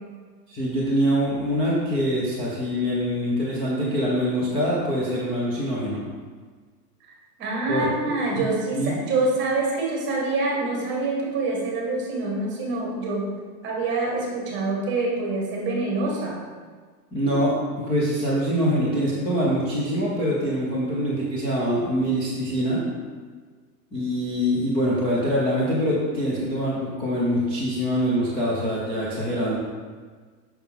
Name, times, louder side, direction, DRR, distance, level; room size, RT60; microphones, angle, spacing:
voice 1, 0.5-6.0 7.7-8.4 8.7-9.0 17.1-17.6 17.9-22.8 23.9-29.6, equal, 10° left, -8 dB, 0.6 m, -24 dB
voice 2, 7.4-13.3 13.6-16.4, right 2 dB, 25° right, -2 dB, 1.5 m, -26 dB
6.4 x 5.8 x 3.5 m, 1.5 s
supercardioid pair, 155°, 48 cm